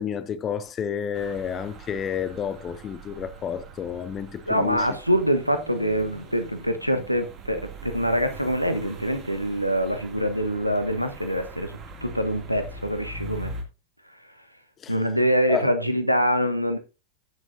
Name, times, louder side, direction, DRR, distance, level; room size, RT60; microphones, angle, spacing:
voice 1, 0.0-4.9 14.8-14.9 15.5-15.7, left 8 dB, 25° left, 0.6 m, -30 dB
sound 1, 1.1-13.6, right 3 dB, 30° right, 2.4 m, -42 dB
voice 2, 4.5-11.7 12.0-13.5 14.9-16.8, equal, 90° left, 1.1 m, -24 dB
16.5 x 6.3 x 2.6 m
figure-of-eight pair, 90°, 0 cm